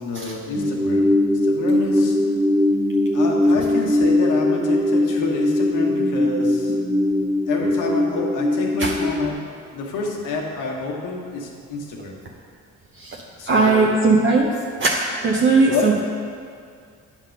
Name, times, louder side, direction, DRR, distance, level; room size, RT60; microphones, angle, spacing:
voice 1, 0.0-2.1 3.1-6.8 7.5-9.4 9.7-12.2 13.4-13.8 15.6-15.9, left 3 dB, 85° left, -1 dB, 1.3 m, -28 dB
sound 1, 0.5-9.3, left 1 dB, 5° right, 0.4 m, -20 dB
voice 2, 13.5-14.5 14.8-14.9 15.2-16.0, right 3 dB, 40° right, -2 dB, 0.8 m, -18 dB
9.2 x 3.7 x 6.4 m, 2.2 s
cardioid pair, 90°, 30 cm